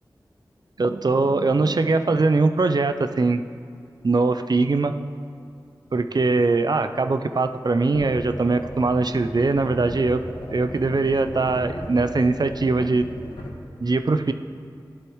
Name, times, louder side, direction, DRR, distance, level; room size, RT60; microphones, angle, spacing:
voice 1, 0.8-3.4 4.0-4.9 5.9-10.2 10.5-13.1 13.8-14.3, right 3 dB, 55° right, 9 dB, 0.5 m, -21 dB
sound 1, 7.9-13.5, left 1 dB, 80° left, 1.8 m, -36 dB
13.0 x 11.0 x 3.1 m, 2.4 s
wide cardioid pair, 45°, 8 cm